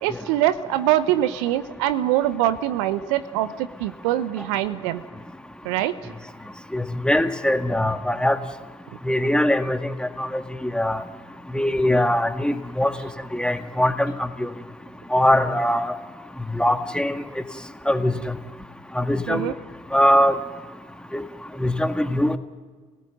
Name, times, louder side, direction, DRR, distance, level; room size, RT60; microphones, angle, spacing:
voice 1, 0.0-5.0 5.6-5.9 19.3-19.5, right 13 dB, 75° right, 14 dB, 0.9 m, -23 dB
voice 2, 6.7-8.4 9.1-11.0 11.5-12.9 13.3-14.5 15.1-15.9 16.6-17.2 17.9-18.1 19.0-19.5 19.9-20.4 21.1-21.2 21.6-22.4, left 1 dB, 5° left, 8 dB, 1.8 m, -21 dB
28.5 x 17.5 x 9.3 m, 1.5 s
hypercardioid pair, 45°, 16 cm